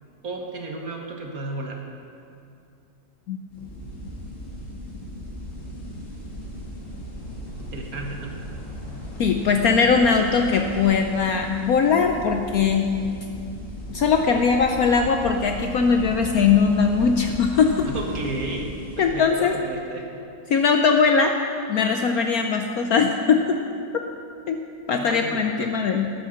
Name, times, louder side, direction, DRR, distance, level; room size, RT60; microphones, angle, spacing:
voice 1, 0.2-1.8 7.6-8.3 17.8-20.1 25.0-25.7, right 2 dB, 50° right, 1 dB, 1.7 m, -33 dB
sound 1, 3.5-19.1, equal, 40° left, 2.8 m, -36 dB
voice 2, 9.2-12.9 13.9-17.9 19.0-19.6 20.5-21.3 21.7-23.6 24.5-24.6 24.9-26.1, left 5 dB, 65° left, 4 dB, 1.0 m, -20 dB
13.0 x 9.5 x 6.5 m, 2.5 s
omnidirectional pair, 2.0 m